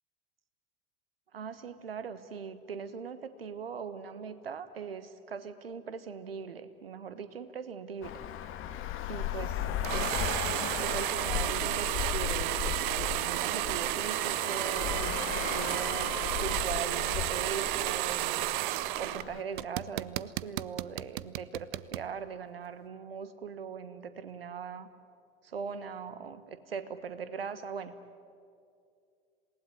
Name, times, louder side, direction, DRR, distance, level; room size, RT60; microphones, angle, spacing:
voice 1, 1.3-8.2 9.1-9.6 9.9-10.2 10.5-18.6 19.0-24.9 25.4-27.9, right 6 dB, 80° right, 13 dB, 1.4 m, -40 dB
Traffic noise roadway noise, 8.0-19.4, left 10 dB, 45° left, 1.9 m, -36 dB
sound 1, 9.8-19.2 19.6-22.1, right 17 dB, 55° right, 0.7 m, -32 dB
27.0 x 19.0 x 9.9 m, 2.4 s
figure-of-eight pair, 70°, 29 cm